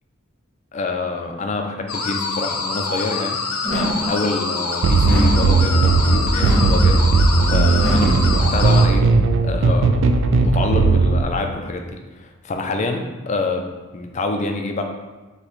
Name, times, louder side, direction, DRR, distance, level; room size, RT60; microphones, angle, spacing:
voice 1, 0.7-3.4 3.7-7.1 7.5-9.1 9.4-10.1 10.4-14.8, left 3 dB, 30° left, 4 dB, 0.3 m, -26 dB
sound 1, 1.9-8.9, left 4 dB, 85° left, 0.6 m, -26 dB
sound 2, 3.6-4.2 5.0-5.6 6.4-6.9 7.8-8.3, equal, 5° left, 0.8 m, -24 dB
sound 3, 4.8-11.2, right 3 dB, 55° right, 0.3 m, -16 dB
3.2 x 2.9 x 4.5 m, 1.2 s
head